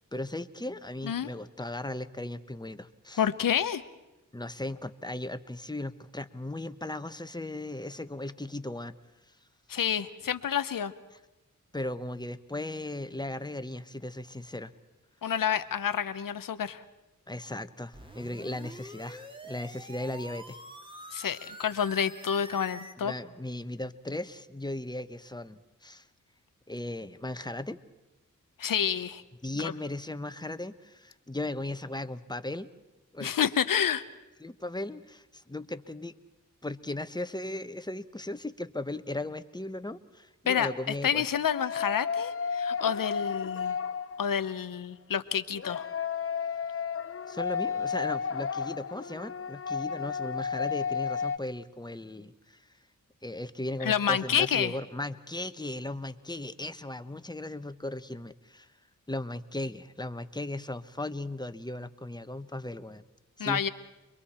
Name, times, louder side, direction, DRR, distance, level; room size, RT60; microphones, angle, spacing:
voice 1, 0.1-3.2 4.3-8.9 11.7-14.7 17.3-20.6 21.0-21.3 23.0-26.1 26.7-27.8 29.4-32.7 33.1-33.3 34.4-36.2 36.6-41.2 47.3-52.7 53.2-58.7 59.1-63.0 63.4-63.7, left 1 dB, 15° left, 11 dB, 1.2 m, -37 dB
voice 2, 3.2-3.8 9.7-10.9 15.2-16.8 21.1-23.1 28.6-29.2 29.6-29.7 33.2-34.0 40.5-43.8 44.2-45.8 53.8-54.8 63.4-63.7, left 8 dB, 85° left, 12 dB, 0.9 m, -29 dB
sound 1, 17.9-22.9, equal, 15° right, 2.3 m, -46 dB
sound 2, 41.5-44.6 45.5-51.4, left 6 dB, 45° left, 0.7 m, -32 dB
30.0 x 22.5 x 4.4 m, 1.0 s
cardioid pair, 40°, 33 cm